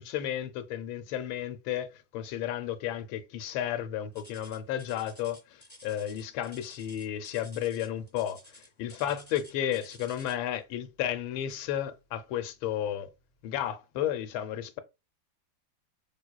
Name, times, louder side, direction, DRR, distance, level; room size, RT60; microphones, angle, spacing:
voice 1, 0.0-13.1 13.4-14.8, left 11 dB, 90° left, 1.4 m, -33 dB
sound 1, 4.1-10.5 11.5-11.7 12.3-12.4 13.1-13.2, left 1 dB, 5° left, 0.9 m, -53 dB
3.6 x 2.9 x 2.2 m
omnidirectional pair, 2.2 m